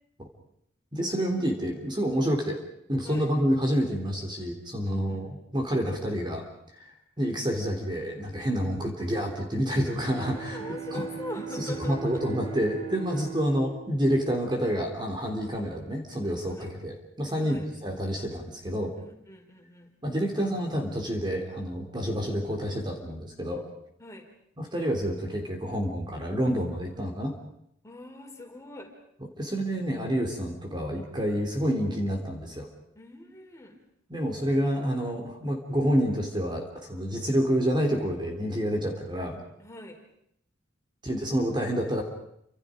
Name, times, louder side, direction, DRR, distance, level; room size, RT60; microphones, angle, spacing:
voice 1, 0.9-2.6 2.9-6.4 6.7-6.9 7.2-10.6 10.9-11.1 11.5-18.9 20.0-23.6 24.6-27.3 29.4-32.7 34.1-39.4 41.0-42.0, equal, 25° right, 3 dB, 3.3 m, -28 dB
voice 2, 4.8-5.2 10.3-12.6 13.1-13.2 16.4-16.7 17.3-17.7 19.0-19.9 24.0-24.3 27.8-28.9 32.9-33.8 39.6-40.0, left 2 dB, 15° left, 1 dB, 4.8 m, -42 dB
Bowed string instrument, 9.8-15.0, right 8 dB, 60° right, 4.6 m, -40 dB
29.5 x 26.5 x 5.1 m, 0.74 s
head